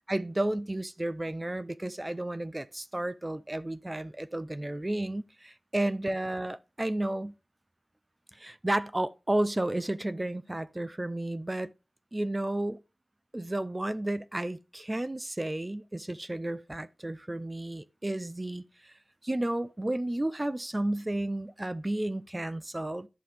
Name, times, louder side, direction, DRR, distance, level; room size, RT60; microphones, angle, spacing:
voice 1, 0.1-7.3 8.3-11.7 12.1-12.8 13.3-18.9 19.2-23.1, right 1 dB, 20° right, 0.5 m, -32 dB
11.0 x 5.9 x 3.4 m
wide cardioid pair, 70°, 0 cm